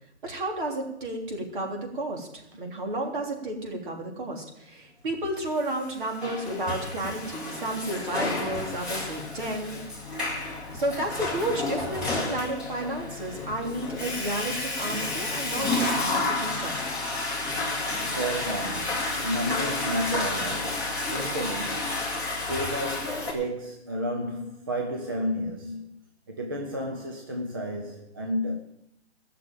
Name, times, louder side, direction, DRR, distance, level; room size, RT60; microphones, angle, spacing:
voice 1, 0.2-9.8 10.7-16.7, right 1 dB, 45° right, 3.4 m, -32 dB
Water / Toilet flush, 5.8-23.3, left 2 dB, ahead, 2.0 m, -31 dB
voice 2, 17.7-22.2 22.5-26.0 26.3-28.6, equal, 20° right, 0.6 m, -32 dB
15.0 x 6.8 x 9.0 m
hypercardioid pair, 170°, 34 cm